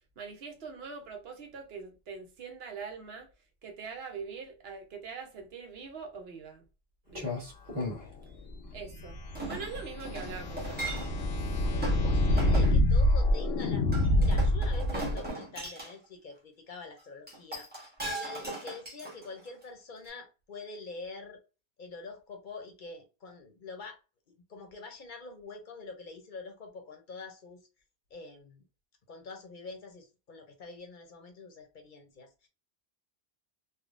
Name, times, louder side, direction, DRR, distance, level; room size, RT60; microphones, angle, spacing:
voice 1, 0.2-3.3 3.6-6.7 7.1-7.3 8.7-11.0, right 5 dB, 75° right, 1.0 m, -43 dB
Clock, 7.1-14.5, left 3 dB, 55° right, 1.4 m, -42 dB
sound 1, 8.9-15.3, left 1 dB, 90° left, 0.8 m, -26 dB
Chink clink, 9.3-11.3 11.8-12.0 12.4-12.8 13.9-15.9 17.3-19.6 20.1-20.2, right 2 dB, 10° right, 0.9 m, -38 dB
voice 2, 11.7-13.9 14.2-21.4 21.8-24.0 24.3-27.6 28.1-28.7 29.1-32.5, left 3 dB, 55° left, 0.8 m, -45 dB
3.5 x 2.2 x 2.4 m
omnidirectional pair, 1.0 m